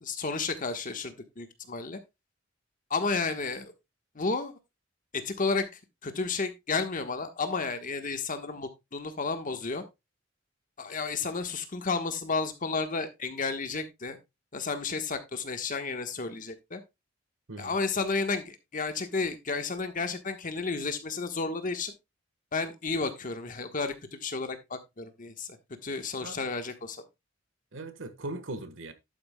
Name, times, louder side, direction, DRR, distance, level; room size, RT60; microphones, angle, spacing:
voice 1, 0.0-2.0 2.9-3.7 4.1-4.6 5.1-5.7 6.0-9.8 10.8-14.2 14.5-16.8 17.6-21.9 22.5-25.6 25.8-27.0, left 4 dB, 45° left, 1.3 m, -32 dB
voice 2, 27.7-28.9, right 2 dB, 85° right, 1.4 m, -39 dB
11.5 x 8.8 x 2.2 m
head